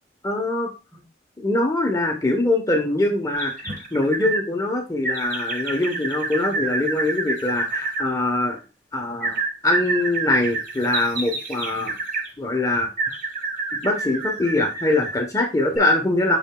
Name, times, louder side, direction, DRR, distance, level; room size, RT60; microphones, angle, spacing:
voice 1, 0.2-0.7 1.4-8.6 8.9-12.0 12.4-13.2 13.8-16.4, left 2 dB, 20° left, 1 dB, 0.9 m, -23 dB
sound 1, 3.4-4.4 5.0-8.1 9.2-12.3 13.0-15.2 15.7-15.8, right 3 dB, 50° right, 1.5 m, -28 dB
8.8 x 5.7 x 2.2 m, 0.30 s
head